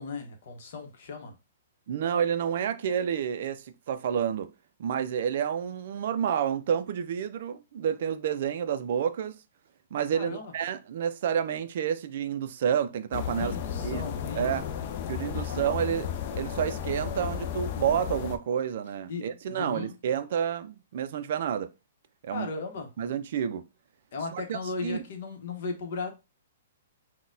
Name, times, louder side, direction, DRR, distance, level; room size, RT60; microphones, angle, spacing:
voice 1, 0.0-1.3 10.1-10.5 13.4-14.5 15.4-15.7 19.1-19.9 22.3-22.9 24.1-26.1, left 4 dB, 55° left, 0.8 m, -36 dB
voice 2, 1.9-4.5 4.8-9.4 9.9-13.6 13.8-14.0 14.4-14.7 15.1-21.7 22.2-22.5 23.0-23.7 24.3-25.0, right 8 dB, 50° right, 0.3 m, -29 dB
sound 1, 13.1-18.4, left 9 dB, 35° left, 0.4 m, -34 dB
3.9 x 2.1 x 2.6 m
hypercardioid pair, 165°, 0 cm